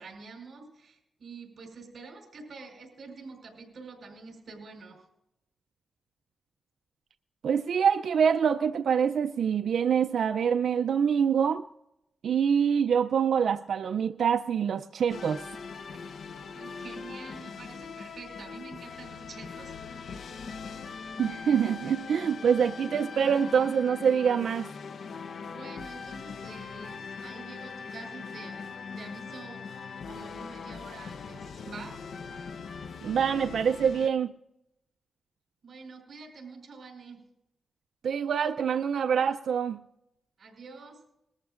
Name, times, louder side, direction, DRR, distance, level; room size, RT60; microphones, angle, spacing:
voice 1, 0.0-5.0 16.5-19.7 25.4-32.0 35.6-37.2 40.4-41.0, right 4 dB, 60° right, 2 dB, 4.6 m, -47 dB
voice 2, 7.4-11.7 12.2-15.5 21.2-24.7 33.0-34.3 38.0-39.8, right 7 dB, 75° right, 7 dB, 0.4 m, -25 dB
sound 1, 15.1-34.1, left 5 dB, 75° left, 0.7 m, -41 dB
20.5 x 14.0 x 2.5 m, 0.83 s
cardioid pair, 95°, 0 cm